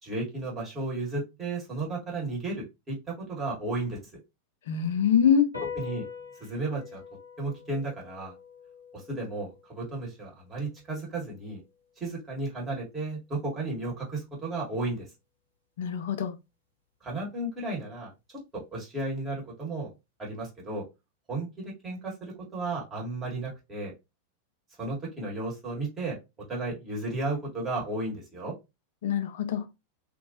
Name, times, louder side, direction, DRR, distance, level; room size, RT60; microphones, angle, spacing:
voice 1, 0.0-4.2 5.7-6.1 6.4-7.0 7.4-8.3 8.9-11.6 12.0-15.1 17.0-18.1 18.5-19.9 20.2-20.8 21.3-23.9 24.8-26.2 26.5-28.5, right 2 dB, 20° right, 1.6 m, -34 dB
voice 2, 4.7-5.5 15.8-16.4 29.0-29.7, left 8 dB, 55° left, 0.5 m, -24 dB
sound 1, 5.5-12.3, left 6 dB, 90° right, 0.9 m, -44 dB
2.7 x 2.6 x 2.7 m
figure-of-eight pair, 90°, 0 cm